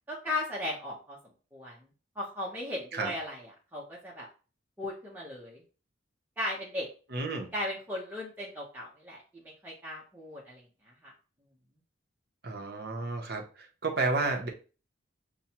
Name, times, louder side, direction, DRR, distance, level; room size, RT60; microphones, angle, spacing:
voice 1, 0.1-1.2 1.5-1.8 2.2-3.4 3.7-4.3 4.8-5.6 6.4-6.9 7.5-10.6 11.0-11.1, left 1 dB, 10° right, -6 dB, 0.7 m, -36 dB
voice 2, 7.1-7.5 12.4-14.5, right 3 dB, 55° right, 2 dB, 0.8 m, -31 dB
5.8 x 2.2 x 2.8 m, 0.36 s
head